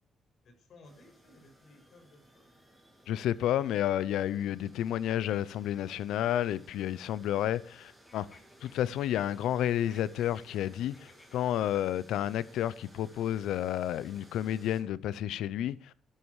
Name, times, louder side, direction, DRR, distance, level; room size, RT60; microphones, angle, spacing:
voice 1, 0.4-2.5, left 2 dB, 60° left, 6.7 m, -58 dB
sound 1, 0.8-14.8, equal, 5° right, 7.7 m, -59 dB
voice 2, 3.1-8.3 8.6-15.9, left 11 dB, 85° left, 0.7 m, -31 dB
sound 2, 5.9-7.8 8.0-9.4 9.8-11.7, left 2 dB, 20° left, 3.6 m, -60 dB
13.0 x 12.5 x 4.9 m
cardioid pair, 90°, 0 cm